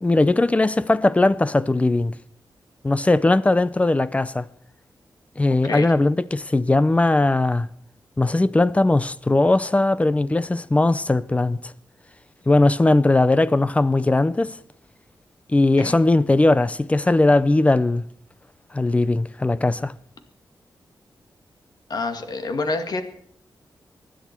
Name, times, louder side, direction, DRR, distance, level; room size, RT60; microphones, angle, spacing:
voice 1, 0.0-2.1 2.8-4.5 5.4-7.7 8.2-11.7 12.5-14.6 15.5-18.0 18.7-19.9, left 2 dB, 15° left, 0.6 m, -19 dB
voice 2, 21.9-23.0, left 3 dB, 60° left, 2.0 m, -27 dB
24.5 x 10.5 x 4.5 m
wide cardioid pair, 130°, 8 cm